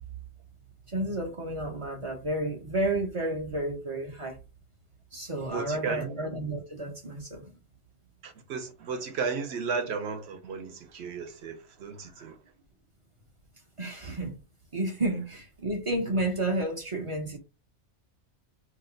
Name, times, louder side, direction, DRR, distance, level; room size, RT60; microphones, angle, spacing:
voice 1, 0.9-4.4 5.1-7.5 13.8-14.4 14.7-17.4, right 1 dB, 40° right, 0.5 m, -31 dB
voice 2, 5.5-6.2 8.2-12.4 16.1-16.2, right 5 dB, 70° right, 0.9 m, -34 dB
2.8 x 2.1 x 3.8 m
omnidirectional pair, 1.2 m